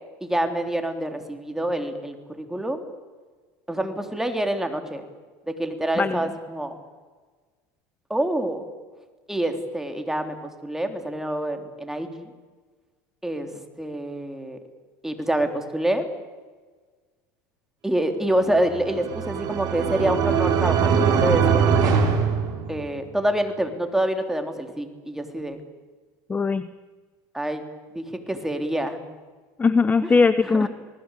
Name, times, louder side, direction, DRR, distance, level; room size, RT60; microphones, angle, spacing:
voice 1, 0.3-2.8 3.7-5.0 5.6-6.8 8.1-8.6 9.3-10.4 10.6-12.3 13.2-13.5 13.8-14.6 15.0-16.1 17.8-21.9 22.7-25.6 27.3-27.6 27.9-29.0 30.6-30.7, right 1 dB, 5° right, 6 dB, 3.5 m, -26 dB
voice 2, 5.9-6.3 26.3-26.7 29.6-30.7, left 4 dB, 15° left, 13 dB, 1.0 m, -20 dB
sound 1, 18.6-23.1, right 6 dB, 45° right, 5.2 m, -22 dB
27.5 x 19.0 x 8.4 m, 1.4 s
supercardioid pair, 120°, 9 cm